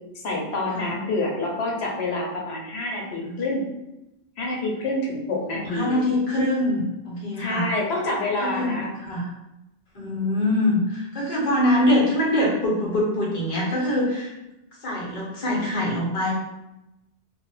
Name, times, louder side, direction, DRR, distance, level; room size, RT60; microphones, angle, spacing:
voice 1, 0.2-3.7 4.4-6.0 7.4-8.9, left 2 dB, 75° left, -2 dB, 0.9 m, -27 dB
voice 2, 5.5-7.7 8.4-9.3 9.9-14.3 14.8-16.3, left 1 dB, 50° left, -4 dB, 0.9 m, -24 dB
2.3 x 2.1 x 3.1 m, 0.93 s
omnidirectional pair, 1.1 m